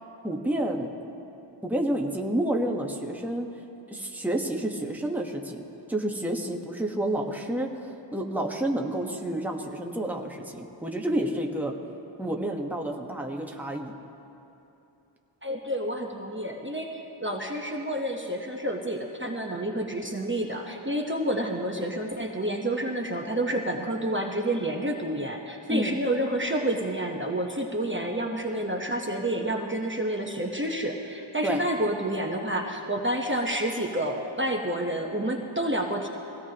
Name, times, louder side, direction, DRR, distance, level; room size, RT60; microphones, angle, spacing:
voice 1, 0.2-0.9 1.6-3.5 3.9-5.6 5.9-7.7 8.1-11.7 12.2-13.9 25.7-26.0 31.4-31.6, right 1 dB, 5° right, 1 dB, 1.2 m, -29 dB
voice 2, 15.4-36.1, right 1 dB, 25° right, 0 dB, 1.1 m, -29 dB
22.5 x 17.0 x 2.9 m, 2.9 s
wide cardioid pair, 60°, 47 cm